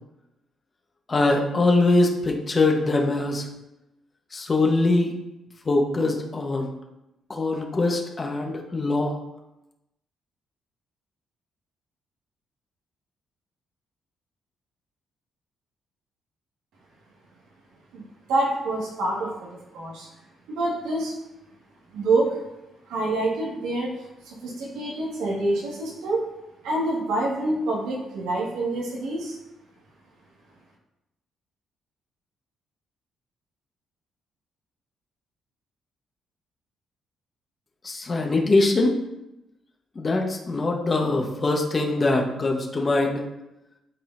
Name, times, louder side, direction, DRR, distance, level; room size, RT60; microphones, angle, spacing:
voice 1, 1.1-3.5 4.3-5.1 5.6-6.7 7.3-9.1 37.8-39.0 39.9-43.2, left 2 dB, 35° left, 1 dB, 1.2 m, -22 dB
voice 2, 17.9-19.5 19.7-20.1 20.5-21.1 21.9-22.4 22.9-24.0 24.3-26.3 26.6-29.4, right 2 dB, 90° right, -4 dB, 1.9 m, -26 dB
11.5 x 4.1 x 2.7 m, 0.93 s
cardioid pair, 90°, 0 cm